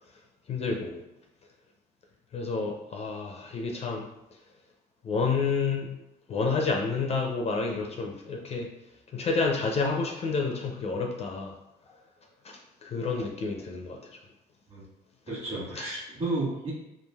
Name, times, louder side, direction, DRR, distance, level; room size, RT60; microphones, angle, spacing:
voice 1, 0.5-1.0 2.3-4.0 5.0-5.9 6.3-8.7 9.1-11.5 12.4-14.0 15.7-15.8, left 4 dB, 40° left, 1 dB, 0.4 m, -29 dB
voice 2, 15.3-16.7, right 2 dB, 35° right, -5 dB, 1.2 m, -32 dB
3.1 x 2.4 x 2.3 m, 0.89 s
cardioid pair, 110°, 17 cm